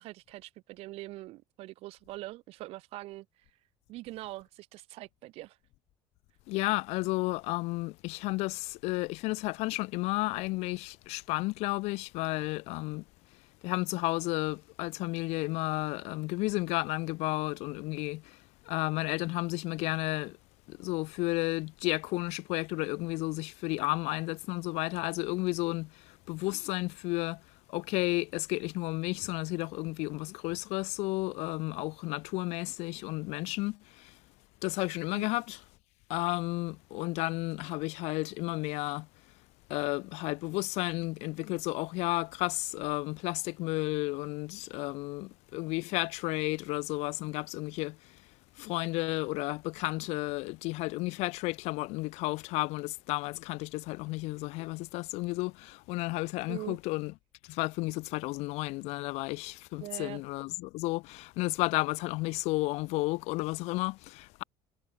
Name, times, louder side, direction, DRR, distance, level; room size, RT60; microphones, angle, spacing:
voice 1, 0.0-3.3 3.9-5.6 35.1-35.3 56.5-56.8 59.8-60.2, right 18 dB, 60° right, 0.8 m, -43 dB
voice 2, 6.5-13.0 13.6-18.4 18.7-20.4 20.7-27.4 27.7-34.1 34.6-35.6 36.1-39.1 39.7-48.1 48.6-57.1 57.5-64.4, left 23 dB, 70° left, 0.5 m, -32 dB
cardioid pair, 155°, 11 cm